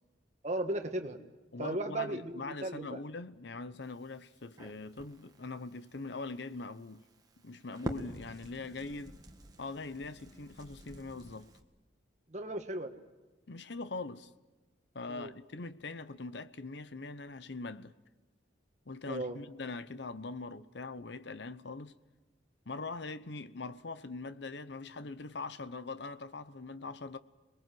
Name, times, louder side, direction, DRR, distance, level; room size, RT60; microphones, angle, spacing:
voice 1, 0.4-1.2 1.6-3.0 12.3-12.9 15.1-15.3 19.1-19.4, right 2 dB, 40° right, 1.6 m, -36 dB
voice 2, 1.5-7.0 7.4-9.2 9.6-11.5 13.5-14.3 14.9-17.9 18.9-21.9 22.7-27.2, left 3 dB, 65° left, 0.8 m, -42 dB
Crackle, 3.8-11.6, equal, 20° right, 1.6 m, -48 dB
27.0 x 21.0 x 7.7 m
head